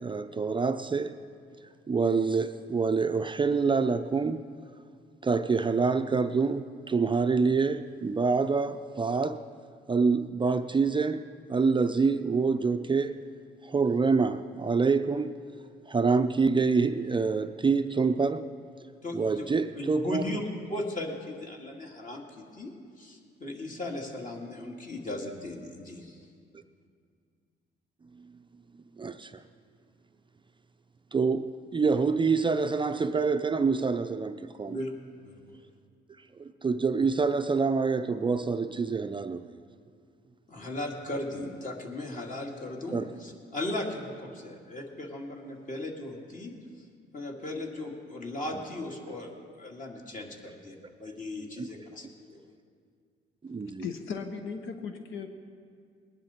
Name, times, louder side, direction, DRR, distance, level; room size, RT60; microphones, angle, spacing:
voice 1, 0.0-1.1 1.9-4.4 5.2-9.4 9.9-11.2 11.5-13.2 13.6-15.4 15.9-18.5 19.1-20.4 29.0-29.4 31.1-34.8 36.4-39.5 42.9-43.1 51.6-51.7 53.4-53.8, right 4 dB, 25° right, 9 dB, 0.5 m, -26 dB
voice 2, 19.0-19.5 19.7-26.2 34.7-34.9 35.2-35.4 40.5-46.5 47.1-52.4, left 1 dB, 40° left, 0 dB, 2.4 m, -37 dB
voice 3, 53.8-55.3, left 5 dB, 75° left, 6 dB, 0.9 m, -37 dB
20.5 x 11.0 x 4.4 m, 2.2 s
cardioid pair, 90°, 20 cm